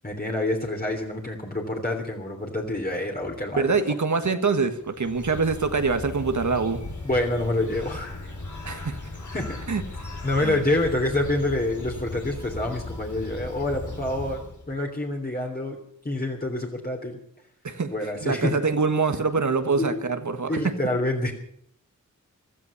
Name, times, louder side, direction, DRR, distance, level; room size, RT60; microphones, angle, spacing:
voice 1, 0.0-3.6 7.0-8.1 9.3-9.6 10.2-15.8 16.0-17.2 17.9-18.6 19.8-20.0 20.5-21.3, left 1 dB, 30° left, 0 dB, 3.2 m, -27 dB
voice 2, 3.5-6.8 8.6-9.0 9.7-9.8 10.4-10.6 17.6-17.9 18.2-20.6, right 4 dB, 70° right, 9 dB, 1.6 m, -24 dB
Bird, 4.8-14.8, left 2 dB, 70° left, 4.3 m, -37 dB
15.5 x 12.5 x 7.2 m, 0.67 s
wide cardioid pair, 60°, 31 cm